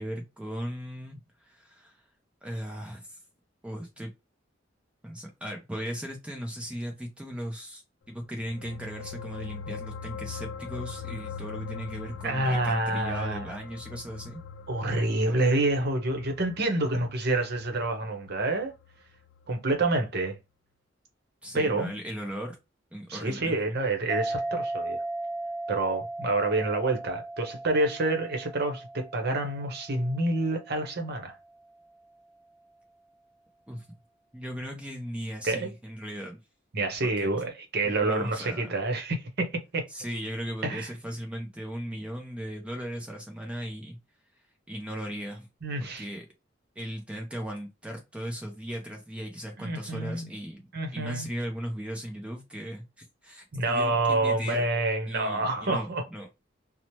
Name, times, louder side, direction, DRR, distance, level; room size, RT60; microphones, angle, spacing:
voice 1, 0.0-2.0 2.4-3.2 3.6-4.1 5.0-7.8 8.1-14.4 21.4-22.6 22.9-23.6 33.7-34.0 34.3-36.4 37.0-37.3 37.8-38.7 39.9-44.0 44.7-45.5 45.8-46.3 46.8-50.7 50.9-54.6 55.1-56.3, equal, 5° right, 0.5 m, -37 dB
sound 1, 8.2-18.9 19.3-19.4, left 6 dB, 80° left, 0.4 m, -42 dB
voice 2, 12.2-13.4 14.7-18.7 19.5-20.4 21.5-21.9 23.1-25.0 25.7-31.3 35.4-35.7 36.7-39.8 40.6-40.9 45.6-46.1 49.6-50.3 50.7-51.3 53.5-56.0, right 2 dB, 60° right, 0.8 m, -28 dB
sound 2, 24.1-31.1, right 2 dB, 45° left, 0.8 m, -36 dB
2.8 x 2.0 x 3.0 m
head